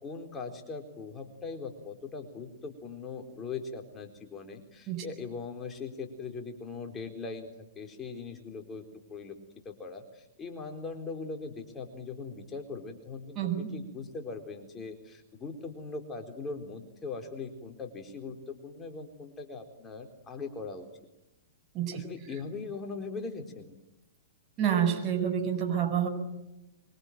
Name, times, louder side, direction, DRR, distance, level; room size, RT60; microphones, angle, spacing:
voice 1, 0.0-7.5 7.8-8.8 9.1-9.4 9.6-20.9 21.9-23.8, left 4 dB, 20° left, 4 dB, 4.1 m, -40 dB
voice 2, 13.4-13.7 21.7-22.0 24.6-26.1, right 9 dB, 30° right, 2 dB, 7.9 m, -28 dB
25.0 x 24.0 x 9.2 m, 0.92 s
hypercardioid pair, 115°, 0 cm